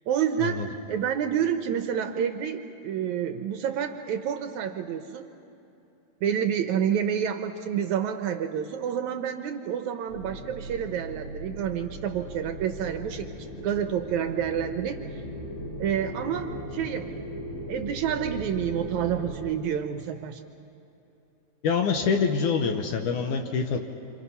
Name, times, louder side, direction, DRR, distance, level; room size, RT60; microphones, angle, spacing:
voice 1, 0.1-0.6 0.9-5.3 6.2-13.3 13.6-15.2 15.8-17.2 17.7-20.4, right 8 dB, 75° right, 7 dB, 1.8 m, -29 dB
sound 1, 10.1-19.4, equal, 85° left, 5.8 m, -38 dB
voice 2, 21.6-23.8, left 5 dB, 70° left, 4 dB, 2.3 m, -25 dB
27.5 x 27.0 x 5.6 m, 2.9 s
omnidirectional pair, 4.1 m